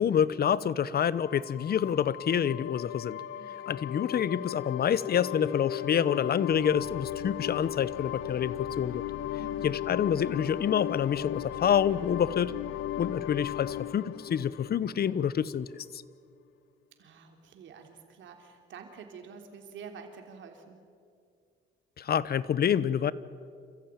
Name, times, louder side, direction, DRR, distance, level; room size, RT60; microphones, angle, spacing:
voice 1, 0.0-3.2 3.7-9.0 9.6-12.5 13.0-16.0 22.0-23.1, left 8 dB, 50° left, 18 dB, 0.9 m, -27 dB
sound 1, 1.1-15.5, left 12 dB, 80° left, 0.7 m, -36 dB
voice 2, 3.3-3.7 9.4-9.7 17.0-20.8, right 6 dB, 75° right, 4 dB, 3.3 m, -48 dB
27.5 x 14.5 x 9.1 m, 2.2 s
cardioid pair, 90°, 20 cm